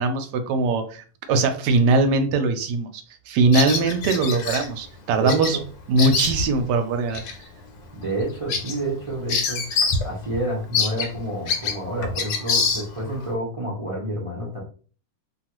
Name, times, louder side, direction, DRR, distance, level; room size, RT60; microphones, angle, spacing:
voice 1, 0.0-5.6 5.9-7.2, right 3 dB, 75° right, 7 dB, 1.1 m, -21 dB
Bird vocalization bird call bird song, 3.5-4.7 5.3-5.6 5.8-6.6 7.1-7.3 7.8-7.9 8.2-10.1 10.3-10.4 10.7-13.2, left 5 dB, 85° left, 1.3 m, -25 dB
voice 2, 5.2-5.6 7.9-9.6 10.0-14.6, right 1 dB, 45° right, -5 dB, 0.4 m, -29 dB
2.9 x 2.3 x 2.9 m, 0.39 s
omnidirectional pair, 2.0 m